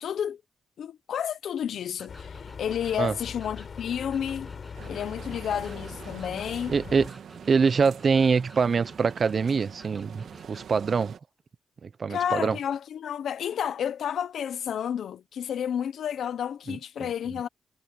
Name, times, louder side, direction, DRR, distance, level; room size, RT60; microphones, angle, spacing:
voice 1, 0.0-0.4 0.8-4.5 4.9-6.7 12.1-17.5, left 9 dB, 70° left, 1.1 m, -31 dB
Electric guitar, 2.0-10.7, right 1 dB, 5° right, 7.0 m, -52 dB
sound 1, 2.1-7.1, left 6 dB, 45° left, 7.4 m, -41 dB
sound 2, 4.7-11.2, right 8 dB, 70° right, 2.8 m, -45 dB
voice 2, 6.7-7.1 7.5-11.2 11.8-12.6 16.7-16.8, right 5 dB, 45° right, 1.0 m, -24 dB
cardioid pair, 105°, 0 cm